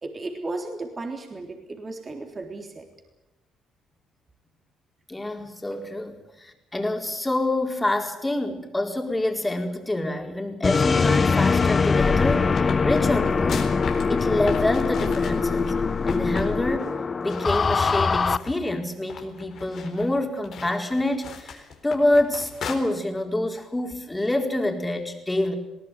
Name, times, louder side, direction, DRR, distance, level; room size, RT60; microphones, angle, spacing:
voice 1, 0.0-2.8, right 2 dB, 35° right, 3 dB, 3.6 m, -35 dB
voice 2, 5.1-13.7 14.1-15.7 16.1-16.9 17.2-25.6, left 1 dB, 15° left, 3 dB, 4.5 m, -26 dB
sound 1, 10.6-18.4, left 4 dB, 35° left, 0.8 m, -22 dB
sound 2, 11.9-15.7 16.1-16.5 16.8-16.9 17.3-18.7 19.1-22.8, left 6 dB, 60° left, 4.1 m, -37 dB
20.5 x 18.5 x 9.4 m, 0.98 s
hypercardioid pair, 55°, 0 cm